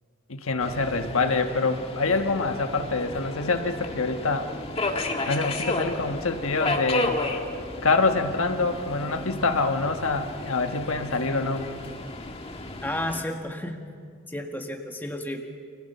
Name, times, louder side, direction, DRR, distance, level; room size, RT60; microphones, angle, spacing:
voice 1, 0.3-4.5 5.2-7.2 7.8-11.7, left 3 dB, 70° left, 6 dB, 1.3 m, -25 dB
Subway metro underground, 0.6-13.2, left 2 dB, 25° left, 1.7 m, -33 dB
voice 2, 12.8-13.8 14.3-15.4, left 1 dB, 10° left, 3 dB, 1.7 m, -32 dB
29.5 x 25.0 x 5.6 m, 2.1 s
head